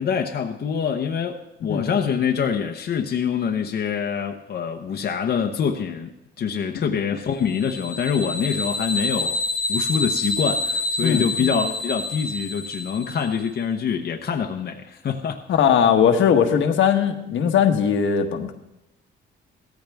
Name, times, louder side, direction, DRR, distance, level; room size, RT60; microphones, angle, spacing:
voice 1, 0.0-9.4 9.7-15.4, left 7 dB, 55° left, 4 dB, 1.0 m, -25 dB
sound 1, 7.5-13.4, left 2 dB, 50° right, 4.8 m, -27 dB
voice 2, 15.5-18.5, left 7 dB, 75° left, 5 dB, 1.4 m, -19 dB
16.0 x 14.0 x 3.5 m, 0.91 s
cardioid pair, 90°, 20 cm